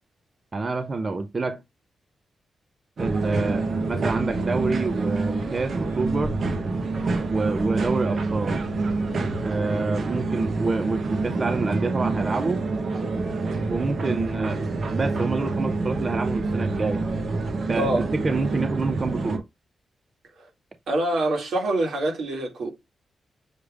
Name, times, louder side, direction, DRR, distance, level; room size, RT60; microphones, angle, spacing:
voice 1, 0.5-1.6 3.0-6.4 7.3-8.6 9.4-12.6 13.7-17.0 17.7-19.4, right 3 dB, 30° right, 0.4 m, -27 dB
sound 1, 3.0-19.4, right 3 dB, 50° right, 0.8 m, -27 dB
voice 2, 17.7-18.1 20.4-20.5 20.9-22.7, right 1 dB, 75° right, 2.1 m, -25 dB
6.4 x 3.3 x 2.4 m
wide cardioid pair, 150°, 0 cm